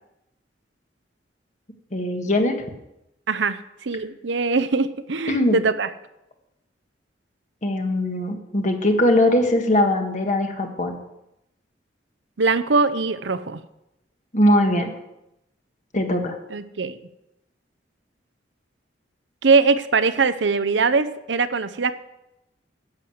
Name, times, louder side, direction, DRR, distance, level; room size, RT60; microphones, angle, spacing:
voice 1, 1.9-2.5 5.3-5.6 7.6-11.0 14.3-14.9 15.9-16.3, left 1 dB, 40° left, 4 dB, 1.6 m, -20 dB
voice 2, 3.3-5.9 12.4-13.6 16.5-17.0 19.4-21.9, right 4 dB, 75° right, 12 dB, 0.7 m, -21 dB
10.5 x 8.1 x 7.7 m, 0.89 s
head